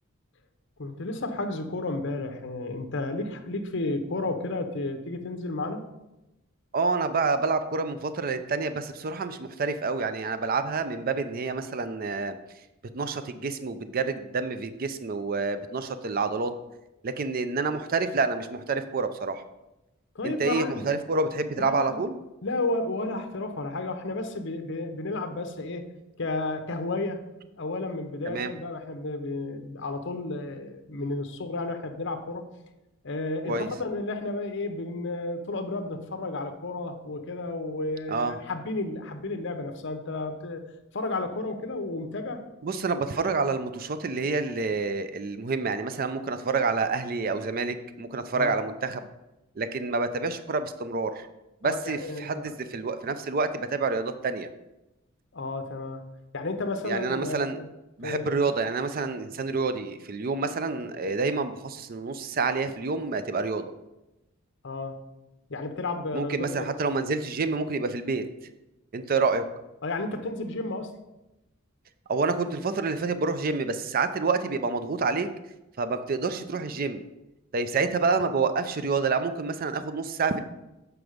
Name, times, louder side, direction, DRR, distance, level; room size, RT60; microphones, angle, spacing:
voice 1, 0.8-5.8 20.1-21.0 21.6-22.0 22.4-25.8 26.2-27.2 27.6-32.5 33.0-40.6 40.9-42.4 48.3-48.6 51.6-52.5 55.3-56.0 56.3-57.6 58.0-58.3 64.6-65.0 65.5-66.7 69.8-70.9 77.8-77.9, left 2 dB, 60° left, 7 dB, 0.8 m, -32 dB
voice 2, 6.7-12.3 12.9-16.5 17.0-19.4 20.2-22.2 28.3-28.5 33.5-33.7 38.1-38.4 42.6-49.1 49.6-51.3 51.6-54.5 56.8-57.6 58.0-63.6 66.1-68.2 68.9-69.4 72.1-75.3 75.8-77.0 77.5-80.4, right 4 dB, 45° right, 10 dB, 0.5 m, -28 dB
7.9 x 4.7 x 5.0 m, 0.96 s
head